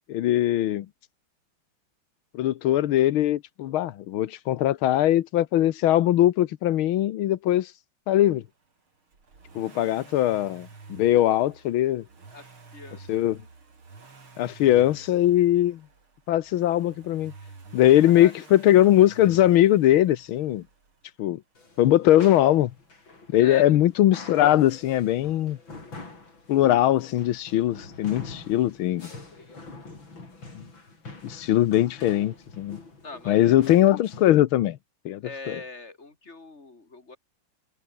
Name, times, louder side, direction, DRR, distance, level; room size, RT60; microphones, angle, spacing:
voice 1, 0.1-0.9 2.3-7.7 8.1-8.4 9.6-12.0 13.1-13.4 14.4-15.8 16.3-17.3 17.7-20.6 21.2-21.4 21.8-22.7 23.3-25.6 26.5-29.1 31.2-32.8 33.3-34.8 35.1-35.2 35.5-35.6, left 13 dB, 85° left, 1.7 m, -21 dB
Accelerating revving vroom, 9.1-21.0 22.3-22.4, right 4 dB, 90° right, 4.9 m, -49 dB
voice 2, 12.3-13.0 18.1-18.3 23.4-23.8 33.0-33.6 35.2-37.2, left 3 dB, 30° left, 3.9 m, -41 dB
sound 1, 21.5-34.4, left 3 dB, 70° left, 6.2 m, -45 dB
omnidirectional pair, 2.2 m